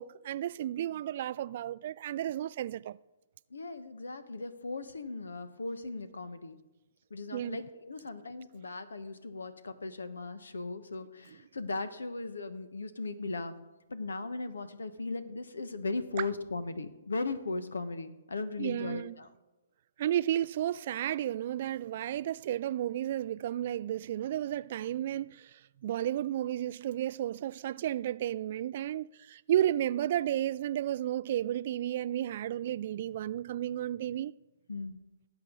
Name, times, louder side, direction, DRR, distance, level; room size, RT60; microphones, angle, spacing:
voice 1, 0.0-3.0 7.3-7.6 18.6-19.2 20.0-25.5 25.8-34.3, right 12 dB, 50° right, 0.3 m, -32 dB
voice 2, 3.5-6.6 7.1-13.5 13.9-19.3 34.7-35.0, left 3 dB, 80° left, 1.1 m, -37 dB
18.0 x 8.4 x 3.9 m
figure-of-eight pair, 125°, 0 cm